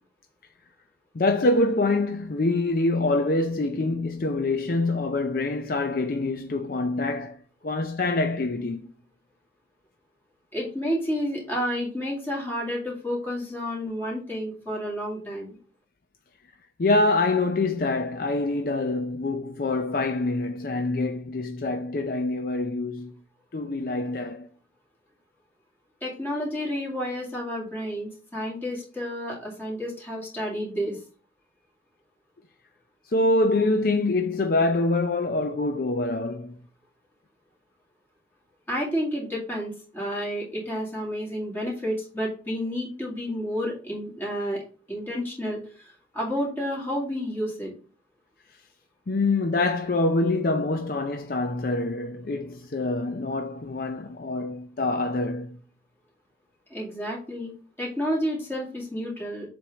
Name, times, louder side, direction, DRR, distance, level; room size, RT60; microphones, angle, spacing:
voice 1, 1.1-7.4 7.6-8.9 16.8-23.1 23.5-24.5 33.1-36.6 49.1-55.6, left 2 dB, 50° left, 0.5 m, -25 dB
voice 2, 10.5-15.6 26.0-31.0 38.7-44.6 44.9-47.7 56.7-57.5 57.8-59.5, equal, 10° left, 2.2 m, -30 dB
7.4 x 3.5 x 3.9 m
head